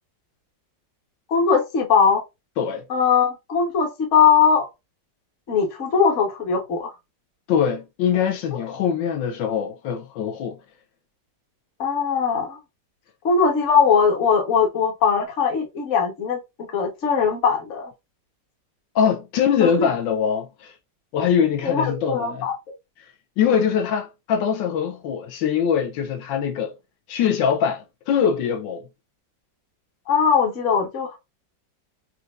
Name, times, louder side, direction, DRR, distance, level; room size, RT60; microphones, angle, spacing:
voice 1, 1.3-2.2 2.9-4.7 5.5-6.9 8.5-8.6 11.8-12.6 13.2-17.9 19.6-19.9 21.6-22.5 30.1-31.2, left 6 dB, 45° left, 1.2 m, -20 dB
voice 2, 7.5-10.6 18.9-20.7 21.1-22.5 23.4-26.7 27.1-28.9, left 7 dB, 85° left, 1.3 m, -23 dB
4.4 x 2.5 x 2.3 m
omnidirectional pair, 2.0 m